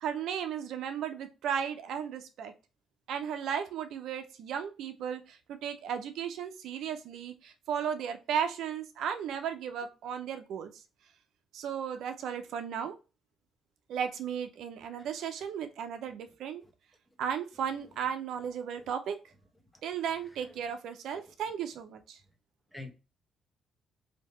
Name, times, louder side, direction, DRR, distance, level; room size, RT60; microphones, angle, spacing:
voice 1, 0.0-2.5 3.1-10.8 11.5-13.0 13.9-16.6 17.2-19.2 19.8-22.2, right 8 dB, 80° right, 0.5 m, -35 dB
voice 2, 14.9-15.1 16.6-16.7 18.8-18.9 21.1-21.3 22.7-22.9, left 2 dB, 5° left, 1.0 m, -47 dB
3.4 x 2.8 x 4.2 m
cardioid pair, 90°, 0 cm